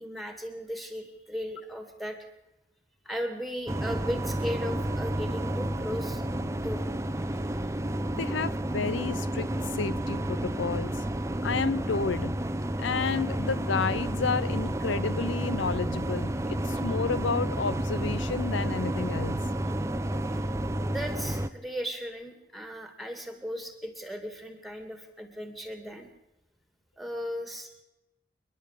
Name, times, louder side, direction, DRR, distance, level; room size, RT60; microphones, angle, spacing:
voice 1, 0.0-2.3 3.0-6.2 6.6-6.8 20.9-26.1 27.0-27.7, equal, ahead, 2.8 m, -36 dB
sound 1, 3.7-21.5, right 1 dB, 15° right, 0.7 m, -31 dB
voice 2, 8.2-11.0 11.4-12.4 12.8-19.4, left 5 dB, 85° left, 0.7 m, -31 dB
29.0 x 11.0 x 8.5 m
head